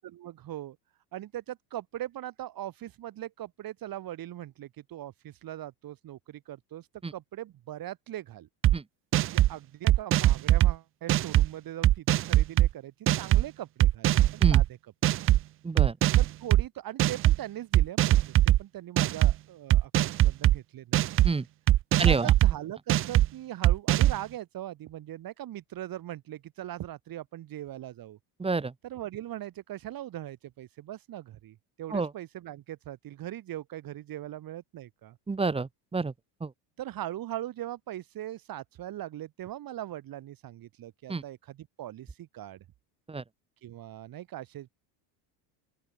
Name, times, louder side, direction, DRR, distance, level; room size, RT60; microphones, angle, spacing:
voice 1, 0.2-0.8 1.1-8.5 9.2-14.7 15.1-15.4 16.1-21.1 22.0-28.2 28.8-35.2 36.8-42.6 43.6-44.8, right 13 dB, 45° right, 3.8 m, -40 dB
sound 1, 8.6-8.7 9.1-9.5 9.9-10.7 11.1-11.5 11.8-12.7 13.1-13.4 13.8-14.6 15.0-15.4 15.8-16.6 17.0-17.4 17.7-18.6 19.0-19.3 19.7-20.5 20.9-21.3 21.7-22.5 22.9-23.3 23.6-24.2, right 14 dB, 30° right, 0.4 m, -21 dB
voice 2, 15.6-16.0 21.2-21.4 22.0-22.3 28.4-28.7 31.9-32.1 35.3-36.1 36.4-36.5 41.1-41.2 43.1-43.2, right 4 dB, 10° right, 1.1 m, -28 dB
open air
supercardioid pair, 110°, 46 cm